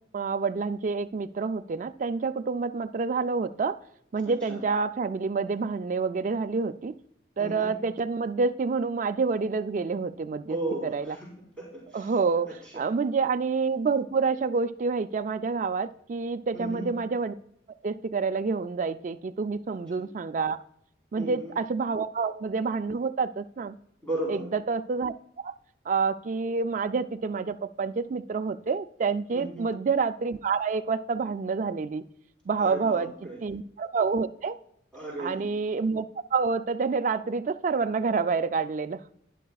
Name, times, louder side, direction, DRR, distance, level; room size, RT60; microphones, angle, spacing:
voice 1, 0.1-3.8 4.1-6.9 7.4-10.6 10.9-11.2 11.9-12.5 12.7-17.3 17.8-20.6 21.1-23.8 24.3-25.1 25.4-25.5 25.9-32.0 32.5-33.1 33.4-34.6 35.2-36.1 36.3-39.0, right 4 dB, 40° right, 10 dB, 0.3 m, -28 dB
voice 2, 4.2-4.6 7.4-7.8 10.5-12.1 12.5-12.9 16.5-16.9 21.2-21.5 24.0-24.4 29.3-29.7 32.6-33.4 34.9-35.5, right 1 dB, 5° left, -7 dB, 3.6 m, -36 dB
11.0 x 10.5 x 2.3 m, 0.73 s
head